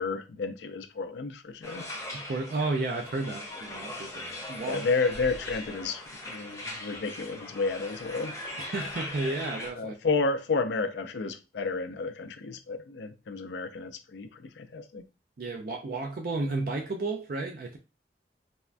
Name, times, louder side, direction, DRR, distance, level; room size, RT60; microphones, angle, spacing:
voice 1, 0.0-1.9 4.6-6.0 6.3-8.4 9.8-15.0, left 4 dB, 85° left, 0.4 m, -31 dB
sound 1, 1.6-9.7, left 1 dB, 20° left, 0.6 m, -40 dB
voice 2, 2.3-4.8 8.6-10.0 15.4-17.8, right 3 dB, 55° right, 0.4 m, -32 dB
3.4 x 2.1 x 2.4 m
head